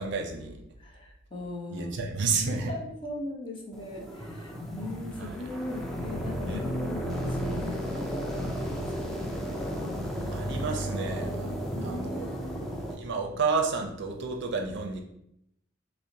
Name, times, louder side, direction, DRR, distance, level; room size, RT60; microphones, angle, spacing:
voice 1, 0.0-0.6 1.7-2.7 5.2-5.3 6.5-6.6 10.3-11.5 11.8-12.4 12.9-15.0, right 4 dB, 60° right, 2 dB, 0.5 m, -31 dB
voice 2, 0.8-2.0 2.7-9.3 11.7-12.8 13.3-13.4, left 1 dB, 25° left, -2 dB, 0.8 m, -39 dB
sound 1, 3.7-12.9, equal, ahead, 0.4 m, -33 dB
5.4 x 2.1 x 2.7 m, 0.77 s
head